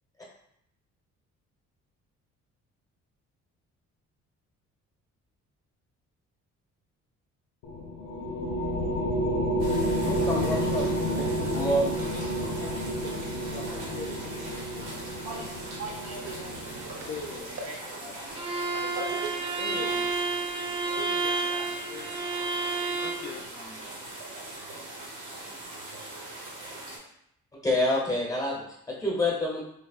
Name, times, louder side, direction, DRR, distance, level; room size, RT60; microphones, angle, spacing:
sound 1, 7.6-17.4, equal, 85° left, 0.5 m, -30 dB
sound 2, 9.6-27.0, right 2 dB, 90° right, 0.9 m, -41 dB
voice 1, 10.1-11.9 27.6-29.6, left 1 dB, 10° left, -3 dB, 0.9 m, -28 dB
voice 2, 12.6-13.1 13.5-15.3 17.1-17.5 18.0-18.2 18.7-19.2 19.6-19.9 21.0-22.2 23.0-23.8 24.7-24.8, left 4 dB, 35° left, -1 dB, 0.6 m, -42 dB
voice 3, 15.8-17.7 18.9-20.1, right 2 dB, 60° right, 0 dB, 0.7 m, -40 dB
Bowed string instrument, 18.4-23.3, right 3 dB, 20° right, 0.5 m, -30 dB
3.4 x 2.2 x 2.4 m, 0.76 s
cardioid pair, 85°, 30 cm